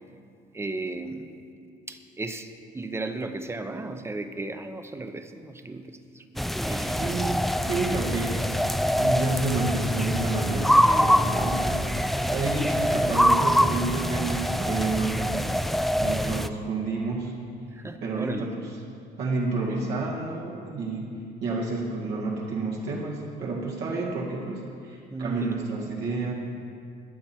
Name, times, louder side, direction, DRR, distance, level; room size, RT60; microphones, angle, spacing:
voice 1, 0.5-1.3 1.9-6.2 6.7-7.0 17.7-18.5 25.1-25.8, right 2 dB, 15° right, 8 dB, 0.8 m, -35 dB
sound 1, 6.4-16.5, equal, ahead, 0.3 m, -24 dB
voice 2, 6.9-8.6 9.0-11.9 12.3-15.4 16.0-17.3 18.0-18.7 19.2-21.1 21.4-26.3, right 3 dB, 75° right, -3 dB, 2.0 m, -30 dB
21.5 x 7.2 x 4.5 m, 2.4 s
cardioid pair, 110°, 17 cm